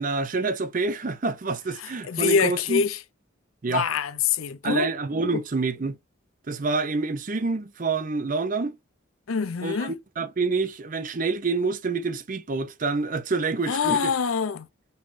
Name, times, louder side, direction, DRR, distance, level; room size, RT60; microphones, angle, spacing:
voice 1, 0.0-2.8 3.6-3.8 4.6-6.0 6.5-8.8 9.6-14.1, right 3 dB, 40° right, 0.5 m, -27 dB
voice 2, 1.8-3.0 3.7-4.9 5.3-5.4 9.3-10.0 13.7-14.7, left 6 dB, 85° left, 0.6 m, -25 dB
5.5 x 3.1 x 2.6 m
head